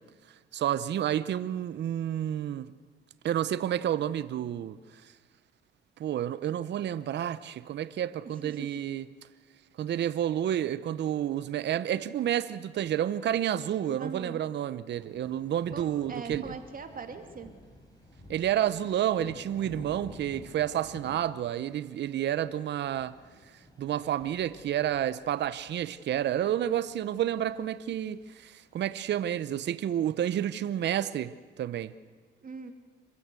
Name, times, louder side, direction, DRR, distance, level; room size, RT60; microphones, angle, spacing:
voice 1, 0.5-2.7 3.2-5.1 6.0-9.0 9.8-16.6 18.3-23.2 23.8-31.9, right 11 dB, 60° right, 0.7 m, -30 dB
voice 2, 8.2-8.7 14.0-14.4 15.7-17.5 32.4-32.7, right 5 dB, 45° right, 2.4 m, -41 dB
sound 1, 14.9-29.1, equal, 20° left, 5.4 m, -52 dB
25.5 x 15.5 x 8.3 m
cardioid pair, 90°, 20 cm